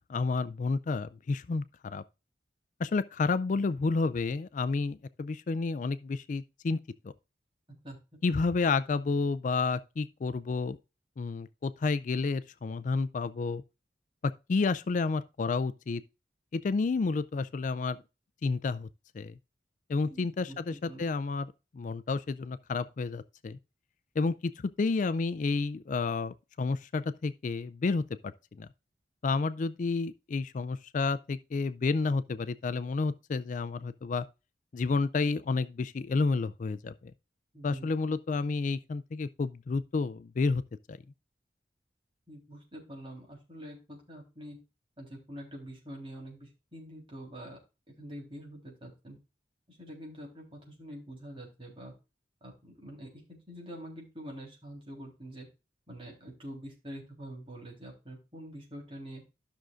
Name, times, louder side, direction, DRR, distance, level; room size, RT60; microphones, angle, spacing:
voice 1, 0.1-2.0 2.8-6.8 8.2-10.8 11.2-13.6 14.2-16.0 16.5-18.0 18.4-18.9 19.1-19.3 19.9-23.6 24.2-24.3 24.8-28.3 28.6-28.7 29.2-34.2 34.7-36.9 37.6-40.6 40.9-41.0, left 4 dB, 45° left, 0.4 m, -30 dB
voice 2, 20.1-21.2 37.5-37.9 42.3-44.6 45.0-47.6 48.0-49.2 49.7-51.9 52.4-55.5 55.9-59.2, equal, 30° right, 3.6 m, -45 dB
13.0 x 6.3 x 2.5 m
head